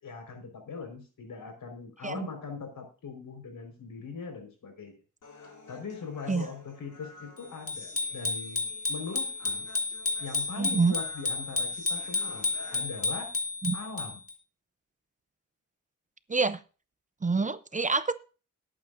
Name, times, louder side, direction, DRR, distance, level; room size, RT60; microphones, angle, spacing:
voice 1, 0.0-4.9 5.7-9.6 10.2-13.3 13.7-14.2, left 5 dB, 90° left, 4 dB, 4.7 m, -41 dB
Human voice, 5.2-13.2, left 3 dB, 70° left, 5.2 m, -51 dB
Bicycle bell, 7.7-14.3, left 3 dB, 45° left, 2.4 m, -32 dB
voice 2, 10.6-10.9 13.6-13.8 16.3-16.6 17.2-18.1, right 4 dB, 25° right, 13 dB, 0.6 m, -26 dB
19.0 x 8.7 x 2.6 m, 0.34 s
wide cardioid pair, 135°, 32 cm